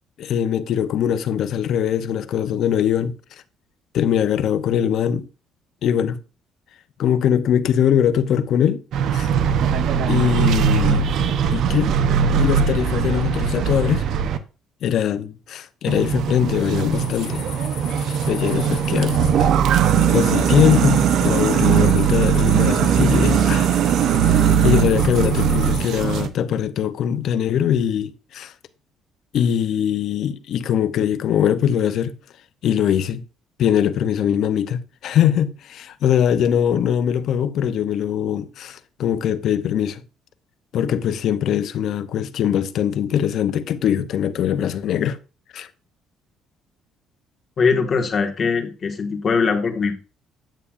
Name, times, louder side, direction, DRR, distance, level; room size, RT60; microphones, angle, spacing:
voice 1, 0.2-3.1 3.9-5.3 5.8-6.2 7.0-8.8 9.1-9.3 10.1-11.1 11.5-11.9 12.4-14.1 14.8-17.4 18.1-19.5 20.1-23.7 24.2-28.5 29.3-32.1 32.6-33.2 33.6-40.0 40.7-45.2 45.5-45.7, left 9 dB, 65° left, 0.7 m, -21 dB
sound 1, 8.9-14.4 15.9-26.3, right 8 dB, 70° right, 0.8 m, -19 dB
sound 2, 16.9-25.9, left 8 dB, 80° left, 1.9 m, -37 dB
voice 2, 47.6-49.9, left 5 dB, 40° left, 1.7 m, -21 dB
9.2 x 8.3 x 2.5 m
cardioid pair, 90°, 0 cm